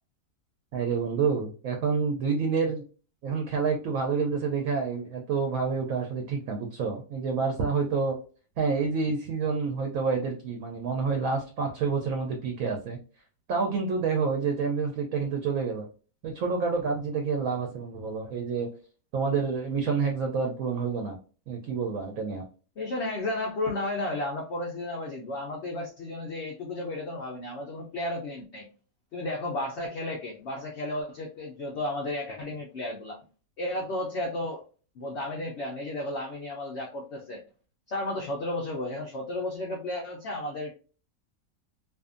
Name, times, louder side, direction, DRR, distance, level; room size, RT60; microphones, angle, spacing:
voice 1, 0.7-2.8 3.2-8.2 8.6-13.0 13.5-15.9 16.2-18.7 19.1-21.2 21.5-22.4, right 5 dB, 70° right, 2 dB, 0.8 m, -28 dB
voice 2, 22.8-28.7 29.1-33.2 33.6-34.6 35.0-37.4 37.9-40.7, left 1 dB, 85° left, 0 dB, 0.6 m, -33 dB
2.6 x 2.5 x 2.4 m, 0.38 s
omnidirectional pair, 1.8 m